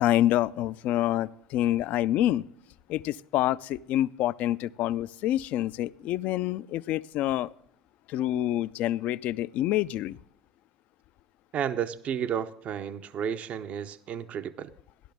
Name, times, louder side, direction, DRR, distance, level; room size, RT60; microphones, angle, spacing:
voice 1, 0.0-2.5 2.9-7.5 8.1-10.2, left 13 dB, 55° left, 18 dB, 0.3 m, -27 dB
voice 2, 11.5-14.7, right 8 dB, 45° right, 12 dB, 0.6 m, -32 dB
13.5 x 11.5 x 3.5 m, 0.69 s
hypercardioid pair, 75°, 3 cm